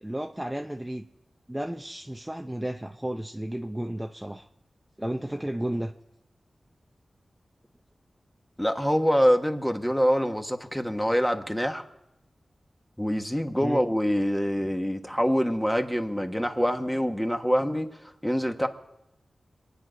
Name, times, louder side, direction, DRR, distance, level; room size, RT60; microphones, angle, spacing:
voice 1, 0.0-1.0 1.5-4.5 5.0-5.9 13.6-13.8, right 1 dB, 10° right, 4 dB, 0.7 m, -33 dB
voice 2, 8.6-11.8 13.0-17.9 18.2-18.7, equal, 5° left, 5 dB, 1.3 m, -25 dB
26.0 x 9.5 x 5.1 m, 0.89 s
wide cardioid pair, 75°, 0 cm